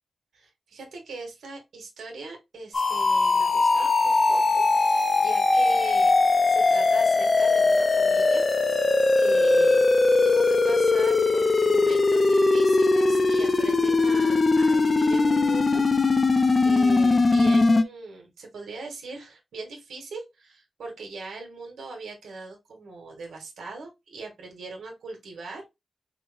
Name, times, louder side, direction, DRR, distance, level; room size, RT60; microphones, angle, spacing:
voice 1, 0.3-8.5 9.2-9.9 10.2-16.3 16.6-25.7, right 3 dB, 90° right, 1.2 m, -40 dB
sound 1, 2.7-17.8, left 3 dB, 45° left, 0.5 m, -20 dB
4.5 x 2.2 x 3.2 m
cardioid pair, 85°, 0 cm